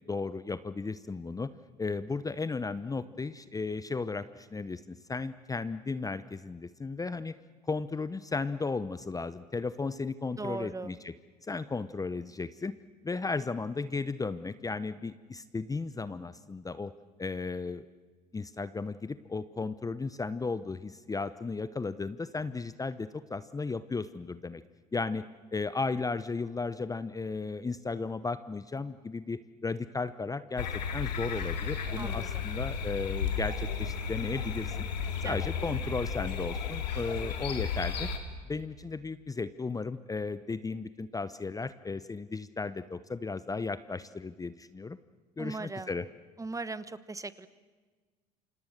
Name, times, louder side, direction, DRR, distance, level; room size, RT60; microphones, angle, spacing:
voice 1, 0.1-1.5 1.8-7.3 7.7-11.1 11.4-12.7 13.0-16.9 17.2-17.9 18.3-24.6 24.9-25.2 25.5-30.7 30.9-34.8 35.2-38.1 38.5-45.0 45.4-46.1, left 4 dB, 15° left, 14 dB, 0.9 m, -35 dB
voice 2, 10.4-11.0 32.0-32.5 35.2-35.4 45.4-45.9 46.4-47.5, right 3 dB, 15° right, 15 dB, 1.2 m, -38 dB
sound 1, 30.6-38.2, left 6 dB, 85° left, 2.8 m, -33 dB
29.0 x 26.0 x 6.7 m, 1.4 s
hypercardioid pair, 75°, 21 cm